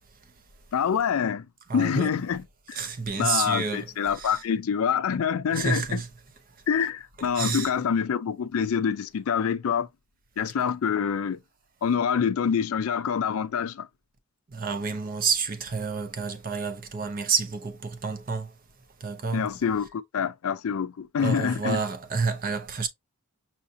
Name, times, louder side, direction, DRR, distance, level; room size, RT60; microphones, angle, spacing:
voice 1, 0.7-1.5 1.7-2.8 3.2-6.0 6.7-9.9 10.4-11.4 11.8-13.9 19.3-21.8, left 7 dB, 70° left, 0.4 m, -26 dB
voice 2, 1.7-2.2 2.7-4.4 5.5-6.1 7.3-7.7 14.5-18.5 19.0-19.5 21.2-22.9, right 5 dB, 40° right, 0.6 m, -29 dB
5.6 x 2.7 x 2.6 m
head